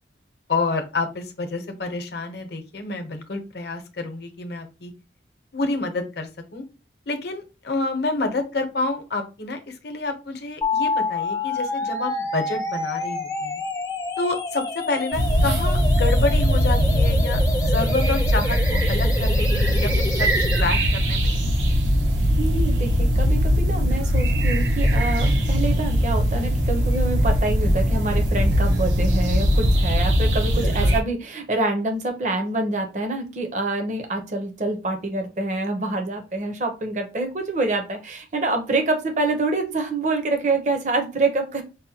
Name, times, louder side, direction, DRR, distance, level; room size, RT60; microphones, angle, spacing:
voice 1, 0.5-4.9 5.5-6.6 7.1-13.6 14.2-21.4 30.6-31.0, left 3 dB, 60° left, 5 dB, 0.8 m, -28 dB
sound 1, 10.6-20.6, left 3 dB, 20° left, 0.4 m, -28 dB
sound 2, 15.1-31.0, equal, 85° right, 0.8 m, -20 dB
voice 2, 22.4-41.6, right 2 dB, 40° right, 5 dB, 0.6 m, -26 dB
5.4 x 2.1 x 2.7 m, 0.30 s
head